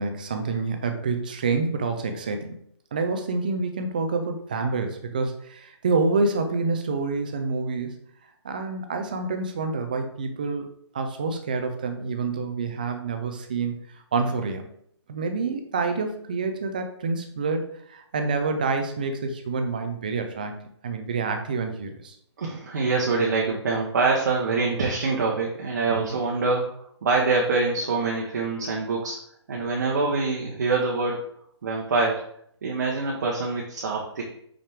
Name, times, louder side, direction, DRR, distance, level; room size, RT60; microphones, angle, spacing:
voice 1, 0.0-2.6 2.9-8.0 8.4-10.7 10.9-13.7 14.1-14.7 15.1-22.1 26.0-26.2, right 4 dB, 20° right, 6 dB, 0.4 m, -27 dB
voice 2, 22.4-29.2 29.5-31.2 31.6-32.2 32.6-34.2, right 3 dB, 35° right, -2 dB, 0.9 m, -25 dB
5.5 x 4.9 x 3.5 m, 0.67 s
hypercardioid pair, 175°, 15 cm